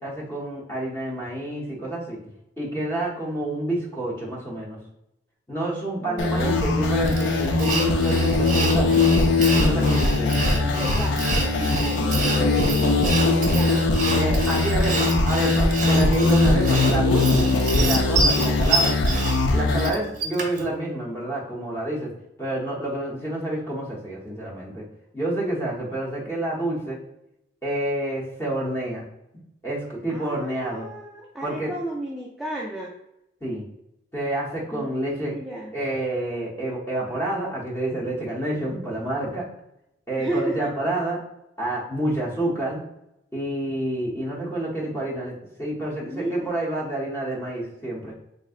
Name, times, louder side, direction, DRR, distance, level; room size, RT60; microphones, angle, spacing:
voice 1, 0.0-2.2 2.6-4.8 5.5-9.1 9.6-10.5 14.1-18.9 19.5-22.1 22.4-24.8 25.1-27.0 27.6-29.1 29.6-30.9 31.4-31.7 33.4-33.6 34.1-35.3 35.7-39.4 40.1-41.2 41.6-42.8 43.3-48.1, right 1 dB, 15° left, -5 dB, 0.9 m, -28 dB
voice 2, 6.0-6.6 10.3-13.8 30.1-32.9 34.7-35.7 40.2-40.7 46.0-46.5, right 1 dB, ahead, -5 dB, 0.3 m, -33 dB
sound 1, 6.2-19.9, left 2 dB, 75° left, 0.4 m, -21 dB
Sawing, 7.1-20.7, right 3 dB, 40° right, 0.6 m, -28 dB
3.7 x 3.0 x 2.4 m, 0.84 s
head